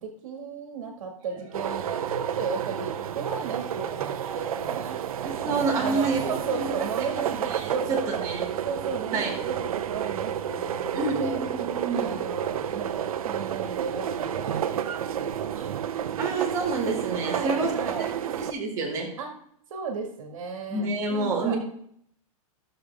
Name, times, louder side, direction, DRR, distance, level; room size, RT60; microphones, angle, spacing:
voice 1, 0.0-5.0 5.8-7.3 7.7-8.3 8.6-11.4 11.9-15.7 16.8-16.9 17.2-18.1 19.2-19.3 19.7-21.6, right 5 dB, 65° right, 3 dB, 1.9 m, -34 dB
sound 1, 1.2-6.4, right 6 dB, 35° right, 1.6 m, -43 dB
sound 2, 1.5-18.5, right 9 dB, 85° right, 0.8 m, -31 dB
voice 2, 5.2-6.2 6.5-6.7 7.4-8.4 9.1-9.3 10.9-12.2 16.2-17.7 18.4-19.1 20.7-21.6, right 3 dB, 20° right, -5 dB, 2.2 m, -28 dB
13.0 x 6.7 x 3.5 m, 0.68 s
supercardioid pair, 170°, 18 cm